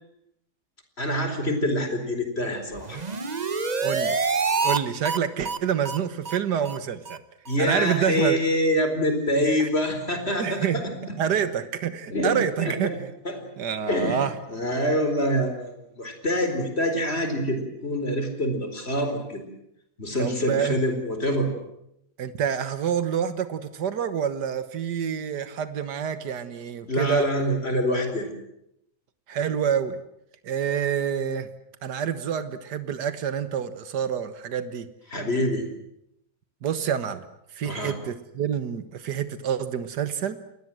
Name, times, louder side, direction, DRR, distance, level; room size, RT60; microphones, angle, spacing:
voice 1, 1.0-3.0 7.5-11.1 12.1-13.0 13.2-13.4 13.9-14.2 14.5-19.4 20.0-21.5 26.9-28.3 35.1-35.7 37.6-38.0, equal, 40° left, 6 dB, 4.6 m, -26 dB
sound 1, 2.8-4.8 5.0-5.2 5.4-5.6 5.8-6.0 6.2-6.4 6.6-6.8 7.1-7.2 7.5-7.6 7.9-8.0, right 4 dB, 30° right, 1.0 m, -26 dB
voice 2, 3.8-4.2 4.6-7.2 7.6-8.4 9.6-9.7 10.4-10.8 11.2-12.9 13.6-14.3 20.2-20.8 22.2-27.3 29.3-30.0 30.4-31.5 31.8-34.9 36.6-37.3 37.5-40.4, right 8 dB, 85° right, 11 dB, 1.9 m, -27 dB
29.5 x 21.0 x 7.7 m, 0.79 s
omnidirectional pair, 1.7 m